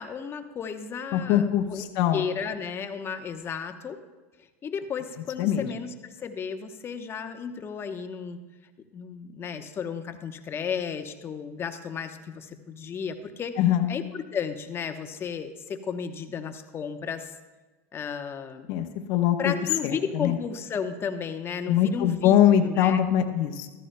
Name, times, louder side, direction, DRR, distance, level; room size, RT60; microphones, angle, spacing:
voice 1, 0.0-1.9 2.1-4.0 4.6-8.4 8.9-13.5 13.9-17.3 17.9-18.7 19.4-22.4 22.6-23.0, left 6 dB, 30° left, 7 dB, 0.9 m, -33 dB
voice 2, 1.1-2.2 5.4-5.7 13.6-13.9 18.7-19.5 19.8-20.4 21.7-23.7, left 10 dB, 60° left, 5 dB, 1.0 m, -22 dB
14.5 x 13.5 x 2.2 m, 1.2 s
supercardioid pair, 110°, 8 cm